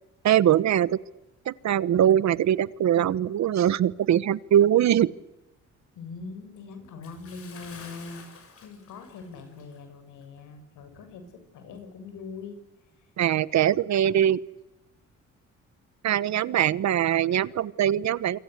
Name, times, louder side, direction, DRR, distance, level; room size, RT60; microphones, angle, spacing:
voice 1, 0.2-1.0 1.5-5.1 13.2-14.4 16.0-18.4, right 10 dB, 65° right, 19 dB, 1.1 m, -22 dB
voice 2, 5.9-8.2 8.6-12.6 16.3-16.5, left 4 dB, 85° left, 8 dB, 7.0 m, -42 dB
Bathtub (filling or washing) / Splash splatter, 7.0-9.9 10.2-10.4 10.9-11.0, left 5 dB, 50° left, 6.3 m, -49 dB
28.0 x 24.5 x 8.1 m, 0.95 s
cardioid pair, 90°, 30 cm